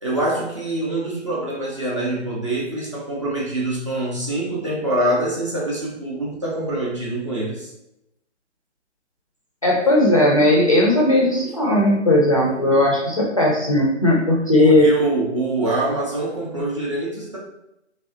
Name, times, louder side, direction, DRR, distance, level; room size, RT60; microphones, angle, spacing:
voice 1, 0.0-7.7 14.6-17.4, right 1 dB, 25° right, -4 dB, 0.5 m, -24 dB
voice 2, 9.6-14.8, left 1 dB, 30° left, -2 dB, 0.4 m, -17 dB
3.2 x 2.6 x 2.5 m, 0.85 s
figure-of-eight pair, 140°, 36 cm